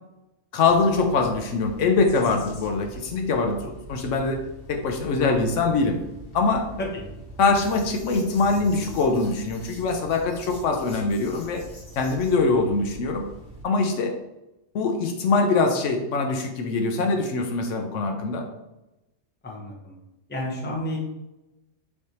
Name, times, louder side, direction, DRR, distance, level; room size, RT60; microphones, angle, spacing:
voice 1, 0.5-6.0 6.3-6.7 7.4-11.6 12.0-13.3 13.6-14.2 14.7-18.4, left 3 dB, 75° left, 4 dB, 0.9 m, -23 dB
sound 1, 0.6-13.6, right 1 dB, 50° left, 1.2 m, -43 dB
voice 2, 19.4-20.0 20.3-21.0, left 1 dB, 10° left, -2 dB, 0.7 m, -31 dB
4.5 x 3.4 x 2.8 m, 0.95 s
omnidirectional pair, 1.3 m